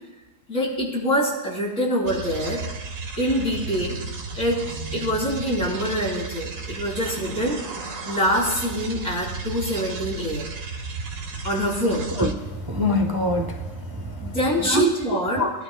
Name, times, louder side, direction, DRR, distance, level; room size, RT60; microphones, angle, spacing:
voice 1, 0.5-2.6 3.2-4.0 4.3-4.6 4.9-7.6 8.1-10.5 11.4-12.1 14.2-15.4, equal, 75° left, -4 dB, 3.9 m, -25 dB
sound 1, 2.0-12.3, right 4 dB, 70° right, 1.3 m, -34 dB
voice 2, 12.2-14.4 14.6-14.9 15.3-15.5, equal, 20° right, 3 dB, 0.6 m, -24 dB
21.5 x 12.5 x 2.2 m, 1.1 s
omnidirectional pair, 1.4 m